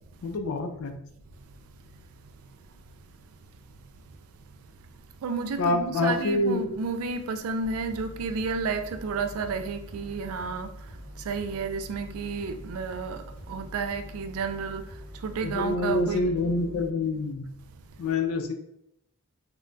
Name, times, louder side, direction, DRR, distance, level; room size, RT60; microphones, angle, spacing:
voice 1, 0.2-1.0 5.6-6.7 15.4-17.4 18.0-18.5, left 2 dB, 75° left, 0.4 m, -26 dB
voice 2, 5.2-16.3, right 4 dB, 70° right, 0.3 m, -32 dB
sound 1, 7.6-16.9, equal, 25° right, 0.7 m, -44 dB
2.2 x 2.1 x 3.7 m
head